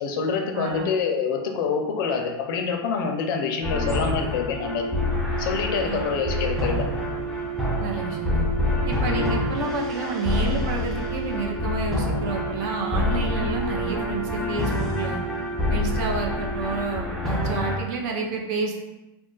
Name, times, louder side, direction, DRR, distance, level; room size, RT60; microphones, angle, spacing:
voice 1, 0.0-4.9 5.4-6.8, left 5 dB, 65° left, 4 dB, 0.5 m, -26 dB
voice 2, 0.5-0.9 5.8-6.0 7.8-8.5 8.8-15.2 15.7-18.8, right 4 dB, 50° right, 1 dB, 0.6 m, -30 dB
sound 1, 3.6-17.8, left 2 dB, ahead, 0.4 m, -27 dB
sound 2, 4.5-17.2, right 3 dB, 65° right, 0.9 m, -34 dB
2.4 x 2.3 x 3.7 m, 1.0 s
supercardioid pair, 150°, 12 cm